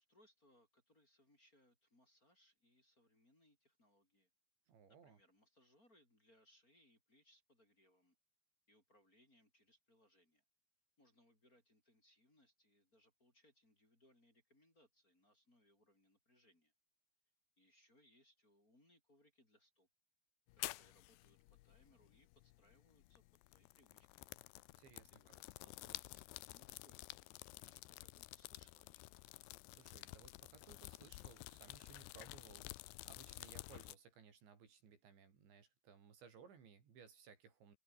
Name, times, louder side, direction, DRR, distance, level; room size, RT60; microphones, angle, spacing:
voice 1, 0.0-4.3 4.9-8.2 8.7-10.4 11.0-16.7 17.6-19.9 20.5-21.4 21.6-23.2 23.5-24.3 25.1-29.1, left 1 dB, 20° left, 5.7 m, -73 dB
voice 2, 4.7-5.2 24.8-25.4 29.7-37.8, right 6 dB, 70° right, 6.7 m, -62 dB
sound 1, 20.5-33.9, left 19 dB, 80° left, 2.6 m, -52 dB
omnidirectional pair, 5.4 m